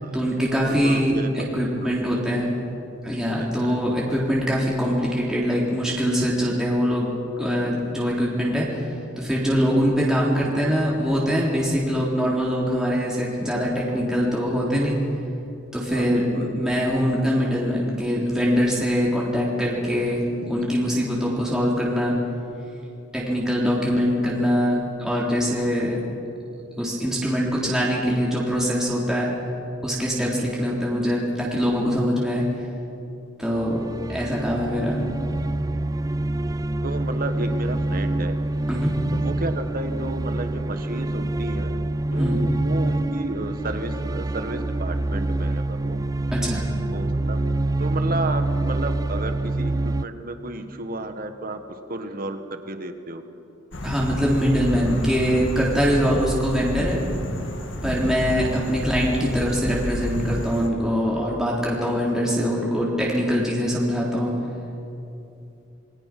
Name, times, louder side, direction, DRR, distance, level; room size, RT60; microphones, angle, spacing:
voice 1, 0.1-2.5 3.0-7.1 7.4-8.9 9.2-15.0 15.7-20.2 20.5-22.2 23.1-26.0 26.8-29.3 29.8-32.4 33.4-33.8 34.1-35.0 38.7-38.9 42.1-42.4 46.3-46.7 53.8-57.0 57.8-64.3, equal, 5° right, -5 dB, 3.5 m, -23 dB
voice 2, 0.7-1.5 1.8-2.3 3.4-3.8 15.9-16.6 20.4-20.9 36.8-38.4 39.1-41.8 42.1-46.0 46.9-47.4 47.8-53.2, right 2 dB, 45° right, 7 dB, 1.7 m, -33 dB
sound 1, 33.5-50.0, right 2 dB, 20° right, 0.4 m, -26 dB
sound 2, 53.7-60.7, left 1 dB, 70° left, 2.1 m, -30 dB
28.0 x 22.5 x 6.1 m, 2.8 s
head